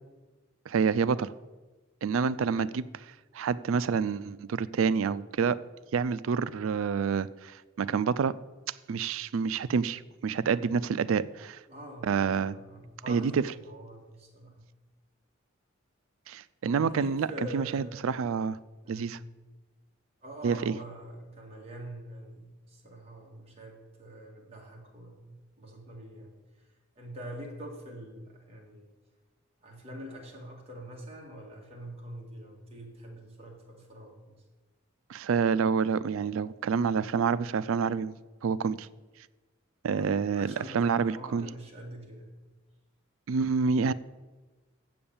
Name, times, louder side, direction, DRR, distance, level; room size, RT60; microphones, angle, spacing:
voice 1, 0.7-1.3 2.0-3.0 3.3-5.6 5.9-8.3 8.9-11.6 12.0-12.5 13.1-13.4 16.3-17.3 17.5-18.6 18.9-19.2 20.4-20.7 35.1-38.1 38.4-38.9 39.8-41.5 43.3-43.9, right 6 dB, 80° right, 18 dB, 0.4 m, -28 dB
voice 2, 11.7-14.6 16.6-17.9 18.8-19.1 20.2-26.4 27.0-28.9 29.6-34.4 39.9-42.3, right 1 dB, 30° right, -1 dB, 1.9 m, -44 dB
7.8 x 7.0 x 7.1 m, 1.2 s
head